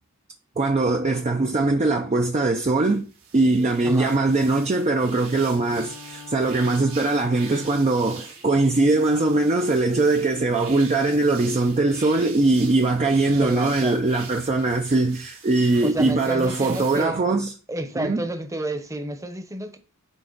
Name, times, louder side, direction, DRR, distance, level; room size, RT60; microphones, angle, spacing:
voice 1, 0.6-17.5 18.0-18.2, right 2 dB, 30° right, 0.5 m, -21 dB
sound 1, 2.8-17.0, right 6 dB, 85° right, 2.8 m, -44 dB
voice 2, 3.8-4.2 7.2-7.3 13.3-14.0 15.8-17.2 17.7-19.8, right 1 dB, 15° right, 0.9 m, -31 dB
Bowed string instrument, 5.2-8.3, left 5 dB, 65° left, 1.1 m, -44 dB
9.1 x 3.5 x 4.0 m
head